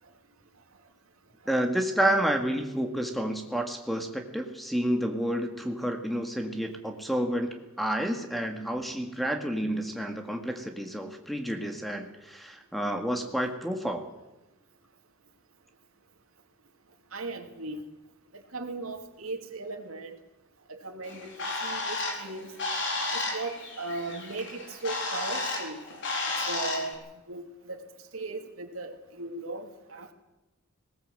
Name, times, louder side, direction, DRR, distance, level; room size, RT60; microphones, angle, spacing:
voice 1, 1.5-7.5 7.8-14.1, right 1 dB, ahead, 4 dB, 1.9 m, -30 dB
voice 2, 17.1-17.8 18.3-20.2 20.7-21.3 21.6-22.5 23.1-25.8 26.5-27.9 28.1-30.1, right 3 dB, 90° right, 5 dB, 2.5 m, -37 dB
Bird, 21.0-26.9, left 2 dB, 60° left, 4.3 m, -33 dB
20.0 x 18.5 x 7.7 m, 0.98 s
head